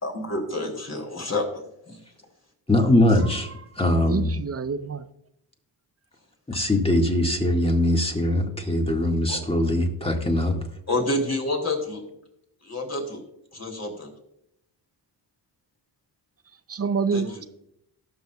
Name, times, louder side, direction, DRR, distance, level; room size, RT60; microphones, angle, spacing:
voice 1, 0.0-1.4 1.9-2.0 3.1-3.2 9.3-9.4 10.9-12.0 12.6-13.2 13.5-14.1 17.1-17.4, left 2 dB, 35° left, 1 dB, 3.2 m, -28 dB
voice 2, 2.7-3.5 3.8-4.3 6.5-10.5, left 1 dB, 10° left, 2 dB, 1.9 m, -21 dB
voice 3, 3.2-3.5 4.0-5.1 16.7-17.5, right 5 dB, 30° right, 12 dB, 0.6 m, -28 dB
18.5 x 6.3 x 2.4 m, 0.78 s
cardioid pair, 60°, 47 cm